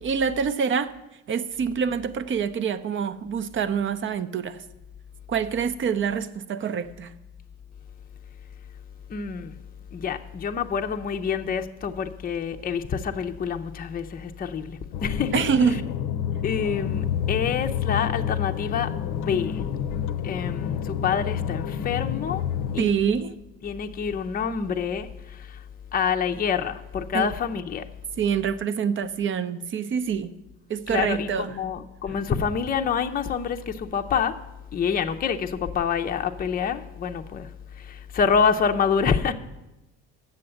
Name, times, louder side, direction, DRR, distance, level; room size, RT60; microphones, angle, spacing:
voice 1, 0.0-0.9 1.3-4.6 5.3-7.1 15.3-15.9 22.8-23.3 27.1-27.3 28.2-30.3 30.7-31.6, right 6 dB, 35° right, 0.6 m, -26 dB
voice 2, 9.1-9.6 9.9-15.8 16.4-19.7 20.2-22.4 22.7-23.2 23.6-25.6 25.9-27.9 30.9-34.4 34.7-39.3, left 6 dB, 25° left, 0.6 m, -27 dB
sound 1, 14.9-22.8, left 9 dB, 70° left, 0.6 m, -29 dB
7.6 x 7.1 x 7.7 m
supercardioid pair, 90°, 33 cm